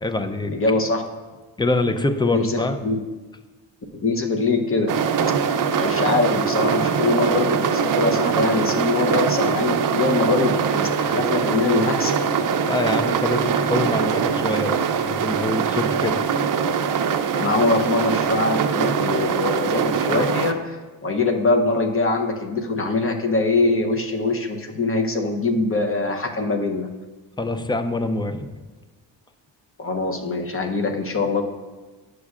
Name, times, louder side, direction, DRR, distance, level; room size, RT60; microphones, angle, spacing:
voice 1, 0.0-0.6 1.6-2.8 12.7-16.2 17.5-17.6 27.4-28.5, left 2 dB, 10° left, 8 dB, 0.4 m, -25 dB
voice 2, 0.5-1.0 2.3-3.0 3.9-5.0 5.5-12.2 17.3-26.9 29.8-31.4, left 3 dB, 30° left, 4 dB, 0.8 m, -23 dB
sound 1, 4.9-20.5, right 6 dB, 45° right, 0.5 m, -22 dB
11.0 x 6.4 x 2.4 m, 1.3 s
cardioid pair, 90°, 45 cm